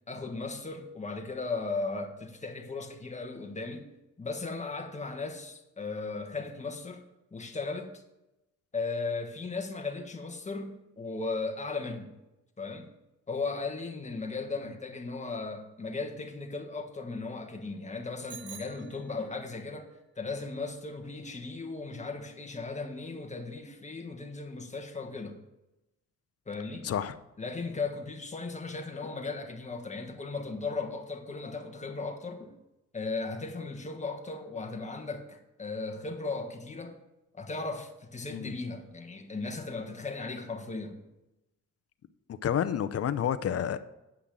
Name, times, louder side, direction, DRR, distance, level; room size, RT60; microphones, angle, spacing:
voice 1, 0.1-3.9 4.2-7.0 7.3-8.0 8.7-12.1 12.6-12.9 13.3-19.9 20.2-25.4 26.5-26.9 27.4-32.5 32.9-37.0 37.3-41.0, left 3 dB, 20° left, 1.5 m, -36 dB
Bicycle bell, 18.3-19.5, right 8 dB, 35° right, 0.8 m, -48 dB
voice 2, 26.8-27.1 38.3-38.5 42.4-43.8, left 9 dB, 50° left, 0.6 m, -29 dB
8.5 x 5.7 x 7.4 m
cardioid pair, 100°, 32 cm